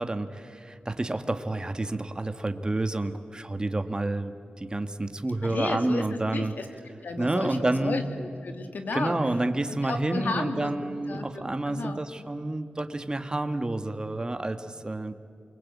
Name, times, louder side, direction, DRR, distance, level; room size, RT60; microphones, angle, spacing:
voice 1, 0.0-6.5 7.2-8.0 8.9-15.2, right 2 dB, 25° right, 8 dB, 1.7 m, -29 dB
voice 2, 5.4-9.2 9.8-10.7 11.1-12.0, left 3 dB, 75° left, 6 dB, 2.4 m, -33 dB
28.5 x 22.5 x 8.5 m, 2.4 s
cardioid pair, 65°, 3 cm